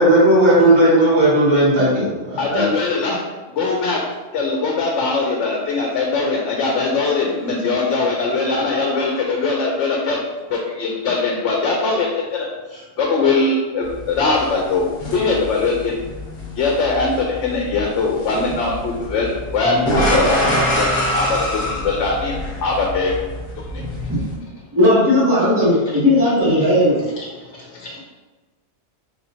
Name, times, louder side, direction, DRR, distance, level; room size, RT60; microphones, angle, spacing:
voice 1, 0.0-2.7, right 1 dB, 55° right, -6 dB, 1.5 m, -15 dB
voice 2, 2.4-3.2 3.5-4.0 4.3-10.2 10.5-14.9 15.1-15.9 16.6-20.4 20.7-22.3 22.6-23.1 23.6-23.8 26.6-26.7 27.2-27.3 27.7-28.0, left 3 dB, 75° left, -1 dB, 0.9 m, -21 dB
sound 1, 13.8-24.3, equal, 55° left, 1.1 m, -25 dB
voice 3, 24.7-27.0, left 1 dB, 20° right, -11 dB, 0.8 m, -16 dB
4.2 x 3.5 x 2.7 m, 1.2 s
omnidirectional pair, 1.2 m